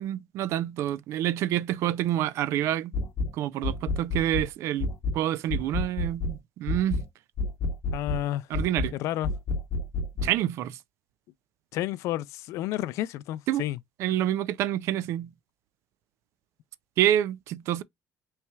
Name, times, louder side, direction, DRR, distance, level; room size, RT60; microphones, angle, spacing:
voice 1, 0.0-2.9 3.3-4.9 5.1-7.0 8.5-8.9 10.2-10.8 13.5-13.6 14.0-15.3 17.0-17.8, right 12 dB, 65° right, 0.4 m, -27 dB
sound 1, 2.9-3.3 3.6-4.5 4.8-5.2 5.5-6.4 6.7-7.1 7.4-8.2 8.5-8.9 9.2-10.3, left 3 dB, 55° left, 0.8 m, -29 dB
voice 2, 7.9-8.5 8.9-9.3 11.7-13.8, left 14 dB, 70° left, 0.3 m, -31 dB
5.6 x 3.2 x 2.2 m
cardioid pair, 175°, 5 cm